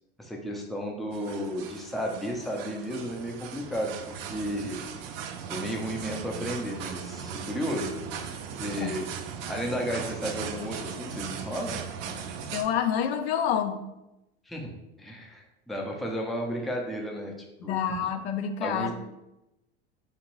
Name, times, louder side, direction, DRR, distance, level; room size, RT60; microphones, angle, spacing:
voice 1, 0.2-4.8 5.5-8.0 8.6-9.1 9.5-11.8 14.5-14.7 15.0-17.3 17.6-17.8 18.6-18.9, equal, ahead, 0 dB, 0.5 m, -33 dB
sound 1, 1.1-12.6, right 7 dB, 70° right, 0.5 m, -38 dB
voice 2, 12.5-13.8 17.7-18.9, left 8 dB, 80° left, 7 dB, 0.5 m, -27 dB
2.9 x 2.5 x 2.9 m, 0.91 s
hypercardioid pair, 95°, 31 cm